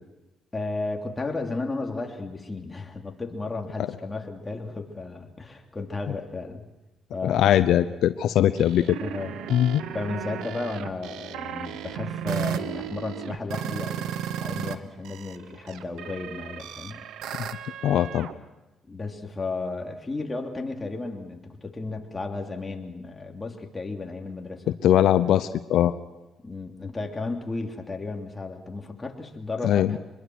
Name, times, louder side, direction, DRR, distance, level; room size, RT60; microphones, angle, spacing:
voice 1, 0.5-6.7 7.1-7.5 9.0-14.1 14.4-17.0 18.9-24.7 26.4-30.0, left 3 dB, 20° left, 2 dB, 3.0 m, -34 dB
voice 2, 7.2-9.0 9.5-9.8 17.4-17.5 17.8-18.3 24.8-25.9 29.6-30.0, left 11 dB, 80° left, 12 dB, 0.7 m, -21 dB
sound 1, 8.6-14.8 15.1-18.3, right 9 dB, 85° right, 1.1 m, -34 dB
24.5 x 21.5 x 6.2 m, 1.0 s
cardioid pair, 90°, 0 cm